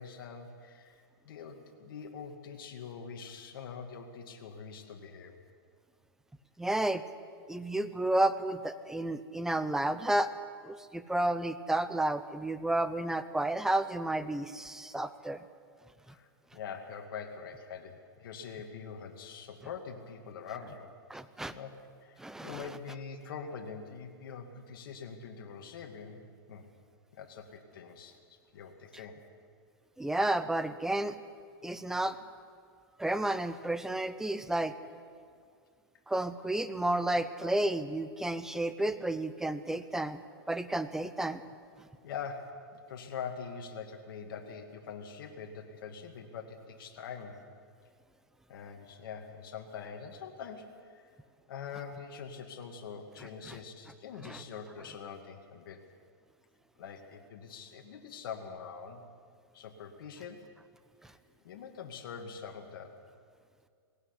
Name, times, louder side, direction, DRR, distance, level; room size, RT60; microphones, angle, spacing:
voice 1, 0.0-5.3 16.1-20.9 21.5-26.2 26.5-26.7 27.1-29.2 42.0-47.5 48.5-51.2 51.5-55.8 56.8-59.0 59.5-60.5 61.4-63.0, left 6 dB, 65° left, 3 dB, 2.4 m, -44 dB
voice 2, 6.6-7.0 7.5-10.3 10.6-15.4 21.1-21.5 22.2-22.7 30.0-31.1 31.6-32.2 33.0-34.7 36.1-40.2 40.5-41.4 53.5-53.6 54.2-54.4, right 1 dB, 5° right, 12 dB, 0.8 m, -31 dB
19.0 x 16.0 x 9.9 m, 2.2 s
hypercardioid pair, 140°, 12 cm